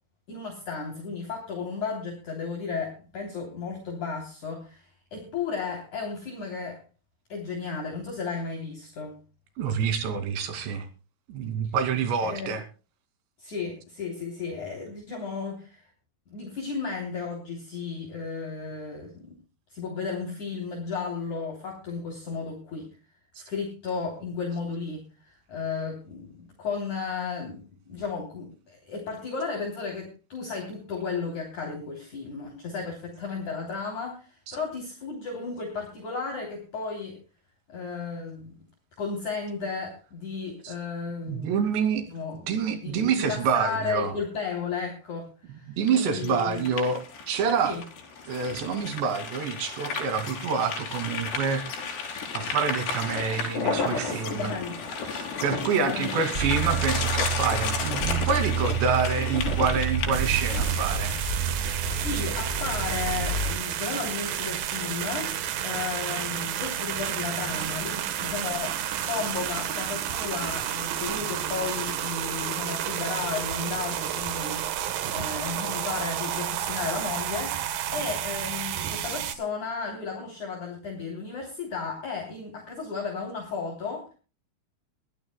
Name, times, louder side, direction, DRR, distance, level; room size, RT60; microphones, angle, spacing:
voice 1, 0.3-6.8 7.3-9.2 12.2-12.6 13.4-15.9 16.3-19.4 19.7-22.9 23.4-37.2 37.7-38.5 39.0-41.5 42.1-46.6 47.6-47.8 54.0-54.8 55.5-56.2 61.9-65.3 65.6-68.8 69.0-84.1, left 5 dB, 45° left, 1 dB, 4.4 m, -34 dB
voice 2, 9.6-10.9 11.3-12.6 34.5-34.6 40.6-40.7 41.2-42.0 42.5-44.1 45.8-47.8 48.3-51.6 52.3-54.5 55.1-61.2, right 6 dB, 85° right, 8 dB, 4.7 m, -27 dB
sound 1, 45.9-61.3, left 5 dB, 75° left, 5.7 m, -33 dB
sound 2, 56.3-63.5, right 5 dB, 20° right, 4.6 m, -29 dB
sound 3, 60.1-79.4, right 10 dB, 65° right, 2.6 m, -31 dB
22.5 x 15.5 x 2.2 m, 0.34 s
omnidirectional pair, 5.0 m